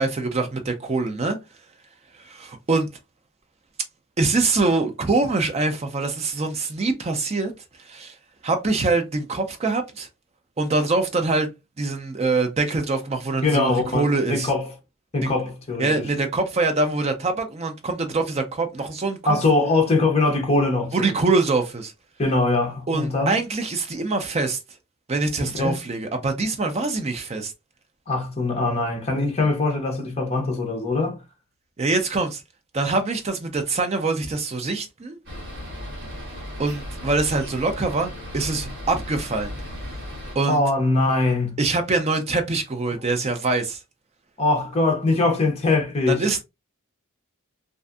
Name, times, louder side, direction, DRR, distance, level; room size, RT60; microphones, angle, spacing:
voice 1, 0.0-1.4 2.2-2.9 4.2-7.5 7.8-8.1 8.4-10.1 10.6-11.5 11.8-14.5 15.2-15.3 15.8-19.4 20.9-21.9 22.9-24.6 25.1-27.5 31.8-32.4 32.7-35.2 36.6-39.5 40.3-40.6 41.6-43.8 46.1-46.4, right 3 dB, 30° right, 0.4 m, -24 dB
voice 2, 13.4-14.7 15.1-16.1 19.3-21.1 22.2-23.4 25.4-25.8 28.1-31.2 40.5-41.6 44.4-46.3, left 2 dB, 30° left, 0.7 m, -22 dB
sound 1, 35.3-40.4, left 1 dB, 50° right, 1.3 m, -36 dB
2.5 x 2.5 x 2.2 m
head